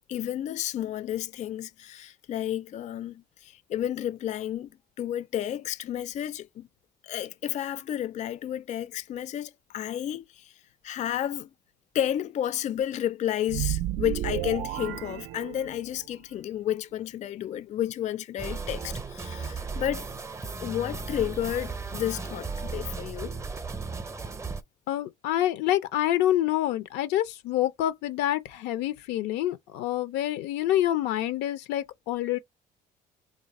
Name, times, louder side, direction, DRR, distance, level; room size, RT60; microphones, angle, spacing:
voice 1, 0.1-4.7 5.0-6.7 7.0-10.5 10.8-11.5 11.9-20.1 20.6-23.3, left 11 dB, 45° left, 0.4 m, -31 dB
sound 1, 13.5-16.1, right 14 dB, 85° right, 0.4 m, -32 dB
sound 2, 18.4-24.6, right 4 dB, 15° right, 0.5 m, -35 dB
voice 2, 24.9-32.4, left 13 dB, 90° left, 0.6 m, -27 dB
3.2 x 2.5 x 4.1 m
cardioid pair, 110°, 17 cm